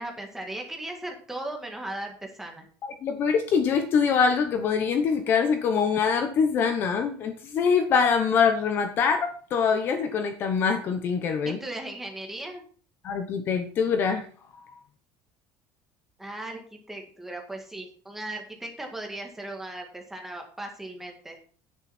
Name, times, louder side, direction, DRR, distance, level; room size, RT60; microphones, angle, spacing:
voice 1, 0.0-2.7 11.4-12.6 16.2-21.4, right 1 dB, 5° right, 2 dB, 1.9 m, -37 dB
voice 2, 2.8-11.6 13.0-14.3 14.7-14.8, left 6 dB, 35° left, 8 dB, 1.0 m, -24 dB
10.0 x 9.0 x 4.3 m, 0.44 s
cardioid pair, 180°, 6 cm